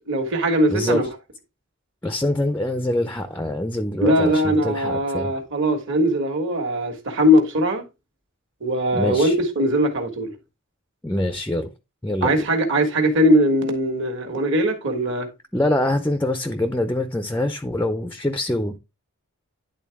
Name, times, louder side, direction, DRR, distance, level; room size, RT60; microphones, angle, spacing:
voice 1, 0.1-1.1 4.0-7.8 8.6-10.3 12.2-15.3, equal, 55° right, 1.6 m, -20 dB
voice 2, 0.7-1.1 2.0-5.4 8.9-9.3 11.0-11.7 12.0-12.5 15.5-18.8, left 1 dB, 10° left, 0.5 m, -24 dB
10.5 x 3.8 x 3.5 m
head